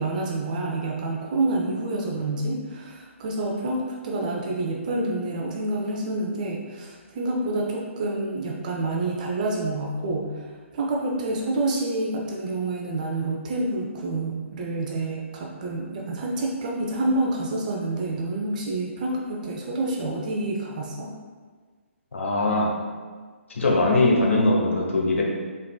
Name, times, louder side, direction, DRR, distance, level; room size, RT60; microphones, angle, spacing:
voice 1, 0.0-10.5 10.7-21.1, right 2 dB, 35° right, -1 dB, 0.5 m, -28 dB
voice 2, 22.1-22.7 23.5-25.2, left 2 dB, 70° left, -1 dB, 0.9 m, -21 dB
3.7 x 3.6 x 2.3 m, 1.5 s
figure-of-eight pair, 140°, 7 cm